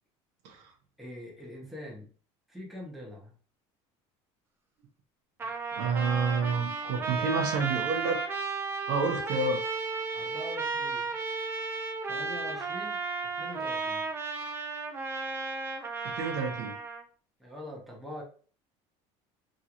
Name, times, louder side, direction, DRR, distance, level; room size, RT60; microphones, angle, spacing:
voice 1, 1.0-2.1 2.5-3.3 6.8-7.5 10.1-11.2 12.0-14.1 17.4-18.2, equal, ahead, -3 dB, 0.9 m, -44 dB
Trumpet, 5.4-17.0, right 4 dB, 20° right, 0.4 m, -34 dB
voice 2, 5.7-8.2 8.9-9.6 16.0-16.7, right 4 dB, 65° right, 4 dB, 0.6 m, -29 dB
2.9 x 2.7 x 2.5 m, 0.41 s
cardioid pair, 160°, 13 cm